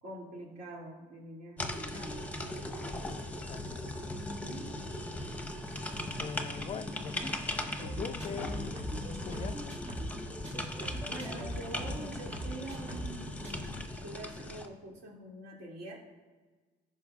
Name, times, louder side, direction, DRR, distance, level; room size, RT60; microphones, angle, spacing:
voice 1, 0.0-2.3 4.1-4.8 6.7-6.8 11.0-16.0, right 2 dB, 70° right, -2 dB, 2.5 m, -45 dB
sound 1, 1.6-14.7, left 1 dB, 10° left, 0.8 m, -39 dB
voice 2, 2.7-3.9 6.2-7.5 7.8-8.8 9.1-9.8, left 7 dB, 35° left, 13 dB, 0.4 m, -43 dB
sound 2, 7.6-11.5, right 2 dB, 15° right, 1.9 m, -46 dB
sound 3, 7.8-10.2 10.4-13.2 13.4-13.7, equal, 40° right, 2.0 m, -41 dB
15.0 x 5.6 x 2.4 m, 1.3 s
cardioid pair, 110°, 17 cm